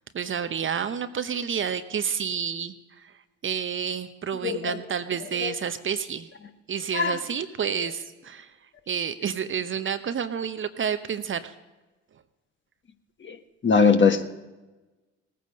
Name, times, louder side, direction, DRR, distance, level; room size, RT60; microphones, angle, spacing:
voice 1, 0.1-2.7 3.4-6.3 6.7-8.5 8.9-11.5, right 7 dB, 35° right, 10 dB, 0.8 m, -29 dB
voice 2, 4.4-4.8 5.4-5.5 6.9-7.2 13.2-13.3 13.6-14.2, left 5 dB, 30° left, 7 dB, 1.4 m, -20 dB
18.5 x 9.2 x 5.3 m, 1.1 s
hypercardioid pair, 60°, 36 cm